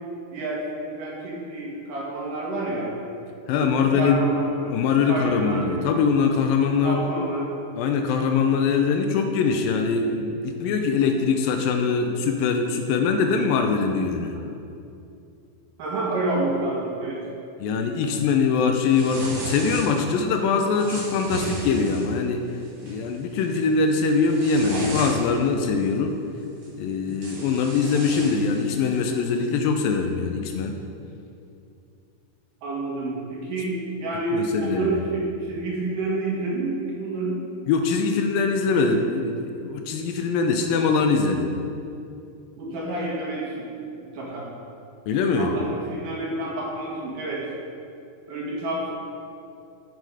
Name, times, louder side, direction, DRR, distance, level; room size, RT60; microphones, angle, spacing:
voice 1, 0.3-2.9 3.5-6.0 6.8-7.5 15.8-17.3 32.6-37.4 42.6-43.7 44.1-44.5 45.3-47.5 48.3-48.9, right 2 dB, 65° right, -4 dB, 3.2 m, -29 dB
voice 2, 3.5-4.2 4.7-7.0 7.8-14.4 17.6-22.4 22.8-26.2 26.8-30.8 34.3-35.0 37.7-41.5 45.1-45.5, left 5 dB, 80° left, 4 dB, 2.3 m, -22 dB
sound 1, 18.9-20.1 20.7-22.1 22.6-22.9 23.4-23.6 24.0-25.4 26.6-26.7 27.1-29.0, right 1 dB, 45° right, 3.2 m, -34 dB
12.5 x 6.5 x 4.9 m, 2.6 s
omnidirectional pair, 4.3 m